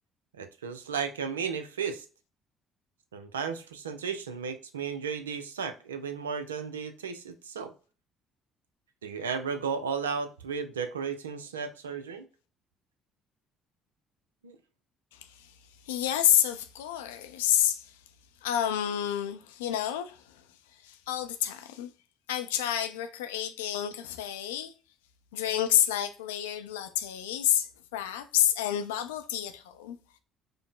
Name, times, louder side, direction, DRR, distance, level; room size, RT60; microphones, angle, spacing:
voice 1, 0.3-2.1 3.1-7.7 9.0-12.3 14.4-14.6, right 6 dB, 85° right, 0.4 m, -34 dB
voice 2, 15.9-17.8 18.4-20.2 20.9-21.9 22.3-24.7 25.3-27.7 27.9-30.0, left 11 dB, 80° left, 0.4 m, -28 dB
5.0 x 2.1 x 3.6 m
figure-of-eight pair, 50°, 0 cm